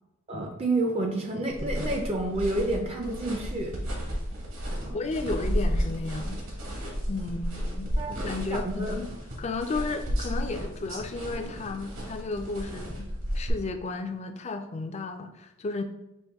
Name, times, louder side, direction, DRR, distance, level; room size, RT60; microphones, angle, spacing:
voice 1, 0.3-3.8 4.8-5.0 8.0-8.1 8.5-8.9, right 2 dB, 30° right, 2 dB, 0.4 m, -29 dB
sound 1, 1.5-13.5, equal, 65° right, 1.2 m, -33 dB
voice 2, 4.9-6.4 6.7-6.8 7.1-9.1 9.4-15.8, left 3 dB, 30° left, 6 dB, 0.3 m, -33 dB
5.3 x 2.6 x 3.5 m, 0.94 s
head